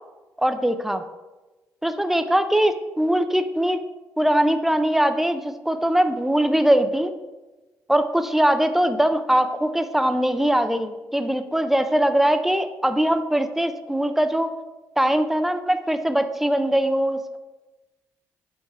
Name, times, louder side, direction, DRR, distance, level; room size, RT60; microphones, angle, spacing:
voice 1, 0.4-1.0 1.8-3.8 4.2-7.1 7.9-14.5 15.0-17.4, right 1 dB, 5° right, 9 dB, 0.6 m, -21 dB
5.5 x 4.5 x 6.0 m, 1.1 s
cardioid pair, 70°, 6 cm